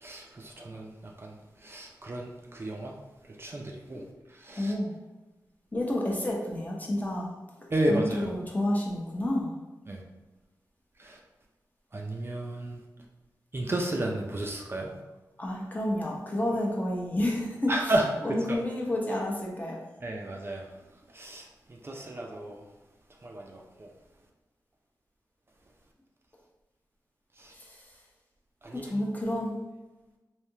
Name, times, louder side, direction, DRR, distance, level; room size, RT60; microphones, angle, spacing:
voice 1, 0.0-1.4 1.6-3.0 3.3-4.0 4.3-4.7 7.7-8.3 9.9-10.0 11.0-11.2 11.9-12.8 13.5-14.9 17.7-18.1 18.5-18.6 20.0-20.7 21.1-22.6 23.2-23.9 27.4-27.5 28.6-28.9, right 1 dB, 30° right, 0 dB, 0.4 m, -32 dB
voice 2, 4.5-4.9 5.7-7.3 7.9-9.5 15.4-17.7 18.2-19.8 27.5-27.9 28.7-29.6, left 1 dB, 20° left, -2 dB, 0.8 m, -30 dB
3.3 x 2.7 x 2.7 m, 1.1 s
wide cardioid pair, 90°, 7 cm